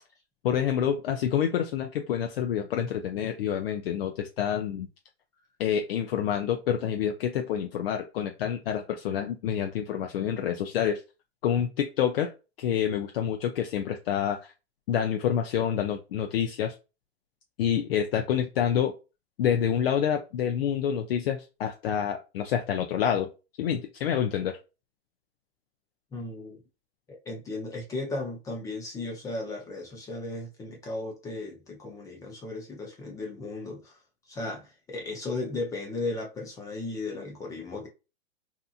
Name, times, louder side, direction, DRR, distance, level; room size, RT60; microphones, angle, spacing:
voice 1, 0.4-4.9 5.6-11.0 11.4-12.3 12.6-14.5 14.9-16.7 17.6-18.9 19.4-23.3 23.6-24.6, left 9 dB, 60° left, 0.5 m, -27 dB
voice 2, 26.1-26.6 27.3-34.0 34.3-37.9, left 2 dB, 10° left, 0.4 m, -35 dB
2.8 x 2.5 x 2.4 m
hypercardioid pair, 130°, 33 cm